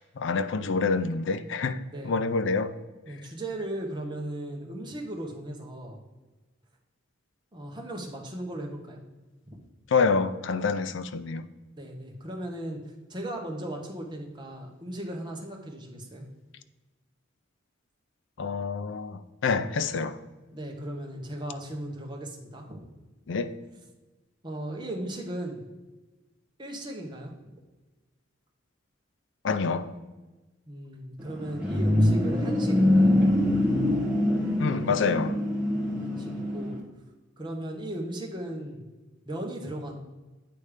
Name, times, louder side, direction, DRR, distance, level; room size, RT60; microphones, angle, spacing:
voice 1, 0.2-1.8 2.0-2.8 9.9-11.5 18.4-20.2 23.3-23.6 29.4-29.9 34.6-35.4, left 4 dB, 65° left, 0.4 m, -27 dB
voice 2, 3.1-6.0 7.5-9.0 11.8-16.3 20.5-22.9 24.4-25.6 26.6-27.3 30.7-33.1 35.8-36.8 37.4-38.8 39.3-39.9, right 1 dB, 20° right, 1.0 m, -37 dB
sound 1, 31.2-36.8, left 1 dB, 5° right, 1.1 m, -24 dB
8.5 x 3.2 x 4.9 m
head